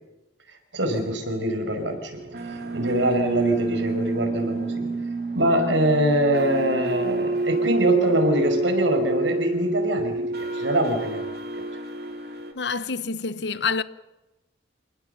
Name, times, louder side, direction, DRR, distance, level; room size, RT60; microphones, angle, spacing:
voice 1, 0.7-2.1 2.5-4.9 5.3-11.2, right 1 dB, 80° right, 5.4 m, -24 dB
sound 1, 1.6-12.5, right 3 dB, 55° right, 3.2 m, -28 dB
voice 2, 12.5-13.8, left 5 dB, 65° left, 0.9 m, -27 dB
27.5 x 19.5 x 6.9 m
head